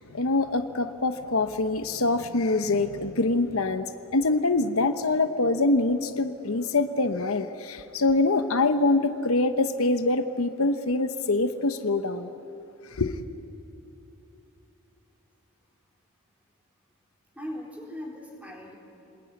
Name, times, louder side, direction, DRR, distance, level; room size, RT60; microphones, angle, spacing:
voice 1, 0.0-12.3 12.9-13.2, left 2 dB, 70° left, 1.0 m, -25 dB
voice 2, 17.3-18.8, left 1 dB, 5° right, 3.9 m, -39 dB
28.5 x 21.0 x 9.6 m
head